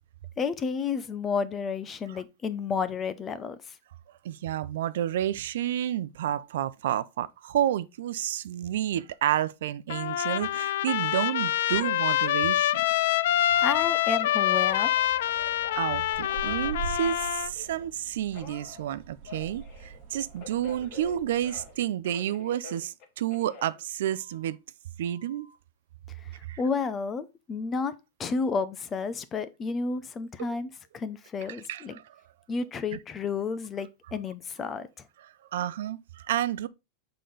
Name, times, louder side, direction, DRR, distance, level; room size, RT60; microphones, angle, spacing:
voice 1, 0.4-3.6 13.6-14.9 26.6-27.9 28.2-32.0 32.5-34.9, left 5 dB, 20° left, 0.5 m, -31 dB
voice 2, 4.2-12.8 13.5-13.6 15.7-24.6 25.0-25.5 26.5-26.6 31.7-32.0 32.9-33.0 35.5-36.7, right 11 dB, 75° right, 0.4 m, -30 dB
Trumpet, 9.9-17.5, left 12 dB, 75° left, 0.3 m, -26 dB
Telephone, 13.5-17.9 18.3-21.8 22.0-24.5 25.0-25.6, left 4 dB, 40° left, 1.4 m, -48 dB
sound 1, 14.5-21.8, right 6 dB, 50° right, 1.5 m, -43 dB
6.7 x 3.8 x 3.9 m
supercardioid pair, 160°, 0 cm